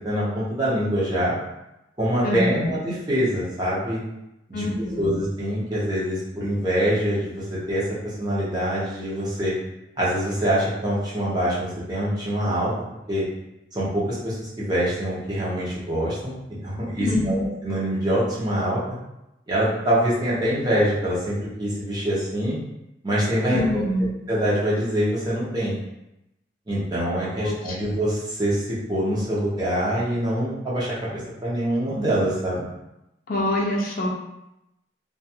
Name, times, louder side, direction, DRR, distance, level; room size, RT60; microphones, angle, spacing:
voice 1, 0.0-1.3 2.0-4.0 4.5-4.7 5.0-7.9 8.2-9.6 10.0-12.7 13.1-13.3 13.7-16.3 16.6-18.8 19.5-22.6 23.0-23.8 24.3-25.8 26.7-32.6, equal, 25° right, -7 dB, 0.7 m, -24 dB
voice 2, 2.2-2.7 4.5-5.2 17.0-17.5 23.5-24.1 27.4-27.9 33.3-34.1, left 1 dB, 50° left, -2 dB, 0.5 m, -25 dB
2.5 x 2.3 x 2.7 m, 0.89 s
head